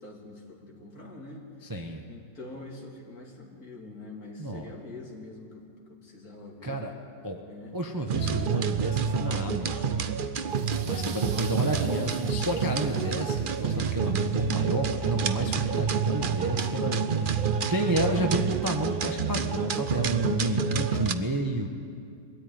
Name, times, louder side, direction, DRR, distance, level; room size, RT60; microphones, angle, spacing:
voice 1, 0.0-1.5 2.1-6.8 7.4-7.8, left 2 dB, 55° left, 0 dB, 3.1 m, -45 dB
voice 2, 1.6-2.1 4.4-4.7 6.6-6.9 7.2-7.4 7.7-10.0 10.9-17.4 17.7-21.7, right 1 dB, 15° right, 3 dB, 0.9 m, -31 dB
sound 1, 8.1-21.1, right 6 dB, 85° right, 0.4 m, -28 dB
sound 2, 10.5-13.9, right 5 dB, 40° right, 1.2 m, -48 dB
21.5 x 13.5 x 9.4 m, 2.4 s
omnidirectional pair, 1.9 m